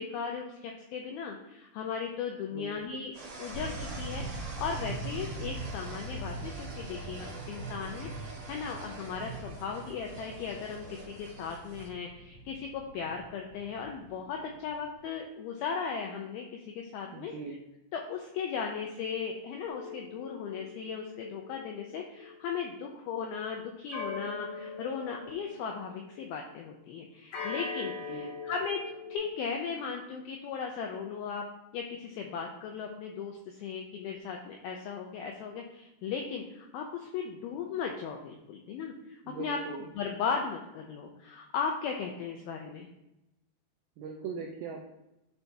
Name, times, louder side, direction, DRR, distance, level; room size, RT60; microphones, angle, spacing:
voice 1, 0.0-3.1 3.4-8.1 8.5-17.3 17.9-28.8 29.1-31.5 31.7-39.6 40.0-42.9, left 6 dB, 85° left, 2 dB, 2.1 m, -37 dB
sound 1, 3.1-11.9, right 3 dB, 45° right, 3.4 m, -46 dB
sound 2, 3.5-15.0, right 2 dB, 30° left, 1.9 m, -42 dB
voice 2, 17.1-17.6 28.0-28.4 39.3-39.9 44.0-44.9, right 5 dB, 85° right, 1 dB, 2.1 m, -40 dB
sound 3, 19.7-23.0 23.9-26.4 27.3-29.2, left 4 dB, 65° left, 2.6 m, -42 dB
11.0 x 4.5 x 2.7 m, 0.92 s
omnidirectional pair, 5.0 m